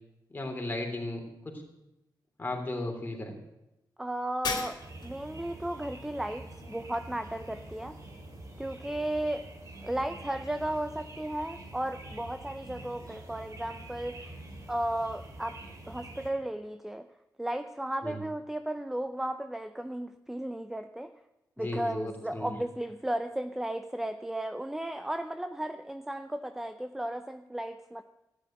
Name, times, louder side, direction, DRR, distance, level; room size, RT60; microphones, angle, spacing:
voice 1, 0.3-1.5 2.4-3.3 18.0-18.2 21.6-22.5, left 2 dB, 25° left, 2 dB, 3.4 m, -35 dB
voice 2, 4.0-8.0 8.6-9.4 9.8-14.3 14.7-15.6 15.9-17.1 17.4-21.1 21.6-28.0, right 1 dB, 5° right, 9 dB, 0.6 m, -34 dB
Shatter, 4.4-5.2, left 4 dB, 60° left, 2.7 m, -34 dB
sound 1, 4.8-16.3, right 2 dB, 45° right, 3.3 m, -46 dB
13.0 x 10.0 x 8.8 m, 0.92 s
wide cardioid pair, 105°, 8 cm